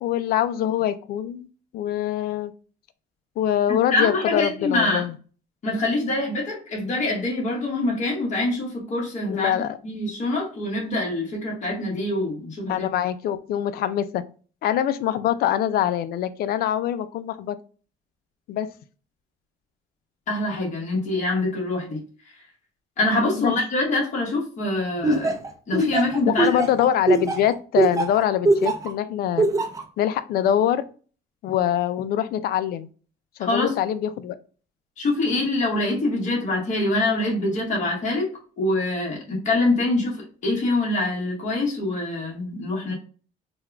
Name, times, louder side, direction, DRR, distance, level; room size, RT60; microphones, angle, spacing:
voice 1, 0.0-1.5 1.7-2.5 3.4-5.2 9.3-9.8 12.7-14.2 14.6-17.6 18.5-18.7 23.4-23.5 26.3-29.5 30.0-30.8 31.4-32.9 33.4-34.4, left 11 dB, 65° left, 13 dB, 0.4 m, -24 dB
voice 2, 3.7-5.1 5.6-12.9 20.3-22.0 23.0-25.4 25.7-26.6 33.4-33.7 35.0-38.3 38.6-42.9, left 2 dB, 45° left, -3 dB, 1.6 m, -25 dB
Laughter, 25.0-28.9 29.4-29.8, right 2 dB, 20° right, 0.6 m, -21 dB
3.4 x 2.4 x 3.4 m, 0.39 s
cardioid pair, 110°, 17 cm